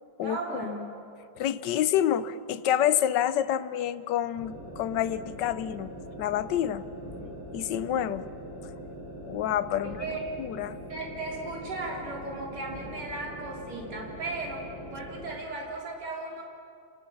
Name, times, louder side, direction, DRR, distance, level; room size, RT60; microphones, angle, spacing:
voice 1, 0.2-0.9 9.8-10.3 10.9-16.4, right 2 dB, 55° right, -2 dB, 4.1 m, -36 dB
voice 2, 1.4-5.9 6.2-6.8 7.5-8.3 9.3-10.0 10.4-10.8, left 11 dB, 70° left, 14 dB, 1.3 m, -27 dB
sound 1, 4.3-15.4, right 1 dB, 30° left, 6.0 m, -42 dB
28.0 x 19.0 x 7.3 m, 2.6 s
omnidirectional pair, 2.2 m